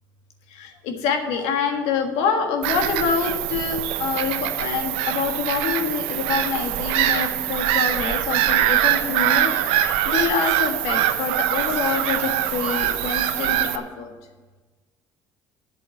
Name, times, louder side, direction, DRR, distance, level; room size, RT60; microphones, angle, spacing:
voice 1, 0.5-14.1, left 6 dB, 80° left, 4 dB, 1.6 m, -26 dB
Bird vocalization bird call bird song / Gull seagull, 2.6-13.8, right 12 dB, 80° right, 0.7 m, -23 dB
8.3 x 7.8 x 8.3 m, 1.3 s
supercardioid pair, 75°, 10 cm